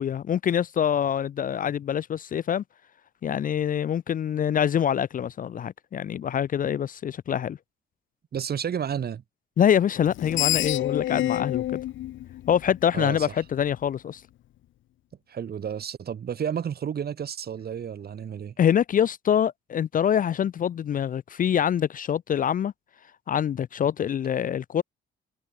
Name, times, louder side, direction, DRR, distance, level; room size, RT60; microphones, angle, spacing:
voice 1, 0.0-2.6 3.2-7.6 9.6-11.8 12.5-14.2 18.6-22.7 23.3-24.8, left 9 dB, 45° left, 0.5 m, -25 dB
voice 2, 8.3-9.2 12.9-13.3 15.3-18.5, right 8 dB, 50° right, 2.5 m, -31 dB
Screech, 10.0-13.2, left 14 dB, 75° left, 1.0 m, -28 dB
cardioid pair, 90°, 20 cm